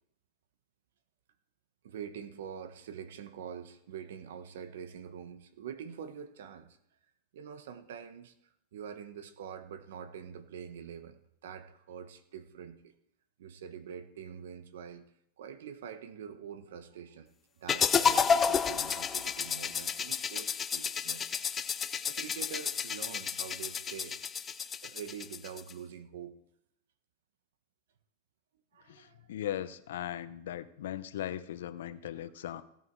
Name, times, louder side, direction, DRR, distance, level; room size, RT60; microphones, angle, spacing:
voice 1, 1.8-6.8 7.3-8.3 8.7-12.9 13.4-15.0 15.4-17.3 17.6-21.4 22.1-24.2 24.8-26.3 28.7-29.3, right 7 dB, 80° right, 10 dB, 1.3 m, -45 dB
sound 1, 17.7-25.7, left 6 dB, 20° left, 0.6 m, -31 dB
voice 2, 28.9-32.6, left 11 dB, 80° left, 12 dB, 0.9 m, -38 dB
16.5 x 9.5 x 4.8 m, 0.77 s
supercardioid pair, 135°, 0 cm